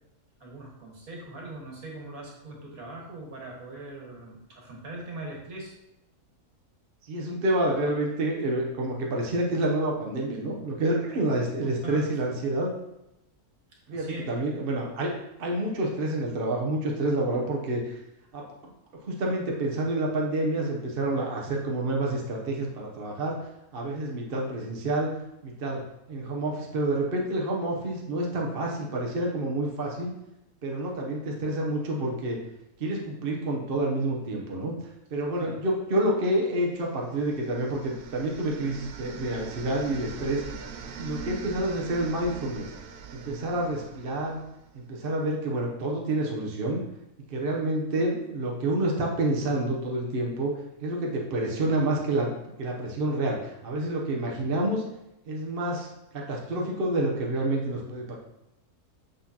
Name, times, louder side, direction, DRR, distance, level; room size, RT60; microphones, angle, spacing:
voice 1, 0.4-5.8 11.6-12.1 13.9-14.3 35.4-35.6 43.2-43.5, right 1 dB, 65° right, -2 dB, 1.9 m, -41 dB
voice 2, 7.0-12.7 13.9-15.1 15.4-18.0 18.3-18.7 19.0-23.4 23.7-25.1 25.4-25.8 26.1-30.1 30.6-32.4 32.8-34.8 35.1-40.4 41.0-42.7 43.1-44.4 44.7-46.8 47.3-52.3 52.6-54.8 55.3-58.2, right 1 dB, 45° right, -1 dB, 0.9 m, -28 dB
sound 1, 36.8-44.8, right 6 dB, 90° right, 1.2 m, -42 dB
6.7 x 6.0 x 2.8 m, 0.89 s
omnidirectional pair, 1.7 m